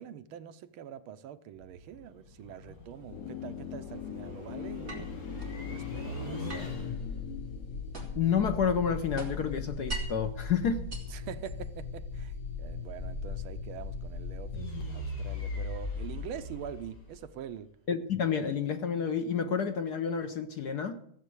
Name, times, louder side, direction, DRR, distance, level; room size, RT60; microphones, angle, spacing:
voice 1, 0.0-5.1 5.7-6.9 11.1-12.3 12.6-17.7, right 9 dB, 75° right, 1.5 m, -44 dB
sound 1, 1.5-17.5, left 3 dB, 40° left, 3.0 m, -39 dB
sound 2, 3.1-9.1 9.4-9.5, left 11 dB, 90° left, 0.6 m, -43 dB
sound 3, 4.9-5.6 6.5-8.3 8.7-10.3 10.7-11.8, right 2 dB, 30° right, 3.1 m, -41 dB
voice 2, 8.1-10.8 17.9-21.0, left 7 dB, 60° left, 1.2 m, -29 dB
15.5 x 7.3 x 7.8 m
omnidirectional pair, 2.4 m